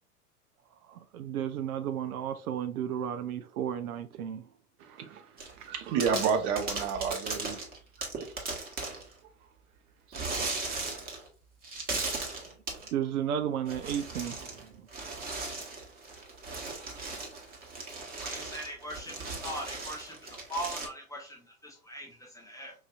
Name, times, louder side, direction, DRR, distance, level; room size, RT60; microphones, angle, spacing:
voice 1, 0.7-4.5 12.9-14.9, right 9 dB, 70° right, 0.5 m, -33 dB
voice 2, 4.8-7.6 8.2-8.3 10.1-10.2, right 6 dB, 45° right, 0.9 m, -31 dB
sound 1, 5.4-5.7 6.0-9.1 10.1-11.3 11.6-12.9 13.6-14.6 14.9-20.9, right 3 dB, 20° right, 1.0 m, -37 dB
voice 3, 18.2-20.2 20.5-22.7, equal, 10° left, 0.5 m, -40 dB
4.8 x 2.6 x 2.4 m
hypercardioid pair, 95°, 46 cm